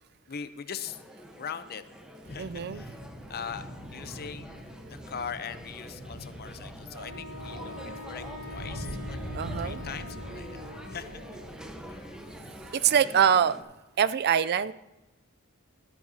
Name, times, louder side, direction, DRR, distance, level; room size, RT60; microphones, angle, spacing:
voice 1, 0.3-1.0 1.4-1.8 2.3-3.0 3.3-3.6 3.9-4.6 5.1-7.8 8.1-9.2 9.6-11.1 11.9-12.2, left 7 dB, 45° left, 11 dB, 0.7 m, -40 dB
sound 1, 0.8-13.6, equal, 5° right, 1.0 m, -46 dB
sound 2, 2.2-12.7, equal, 20° right, 4.4 m, -43 dB
voice 2, 2.4-2.8 9.3-9.8 12.7-13.6 14.0-14.7, right 8 dB, 50° right, 15 dB, 0.4 m, -24 dB
Wind instrument woodwind instrument, 6.9-11.6, left 2 dB, 75° right, 2.1 m, -45 dB
13.5 x 12.0 x 2.8 m, 1.0 s
head